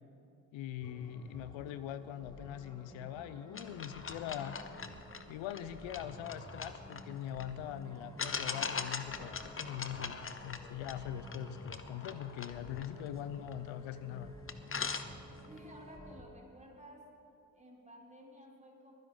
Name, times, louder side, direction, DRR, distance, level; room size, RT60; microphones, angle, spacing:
voice 1, 0.5-4.6 5.3-14.3, left 11 dB, 75° left, 13 dB, 0.6 m, -42 dB
sound 1, 0.8-16.2, equal, 10° left, 1.5 m, -51 dB
sound 2, 3.5-7.5 8.2-13.8 14.2-14.3 14.5-15.6, left 5 dB, 25° left, 0.9 m, -42 dB
voice 2, 15.5-17.1 17.5-18.9, equal, 15° right, -2 dB, 3.7 m, -54 dB
22.0 x 10.5 x 3.9 m, 2.8 s
hypercardioid pair, 45°, 47 cm